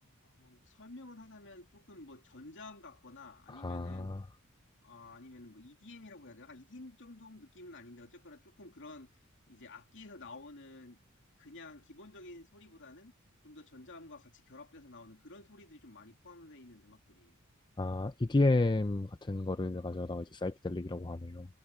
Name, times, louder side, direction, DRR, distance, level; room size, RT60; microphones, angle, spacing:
voice 1, 0.0-4.1 4.8-9.1 9.5-11.0 11.4-13.1 13.4-17.4, left 2 dB, 60° left, 2.8 m, -51 dB
voice 2, 3.5-4.2 17.8-21.5, left 2 dB, 20° left, 0.6 m, -32 dB
head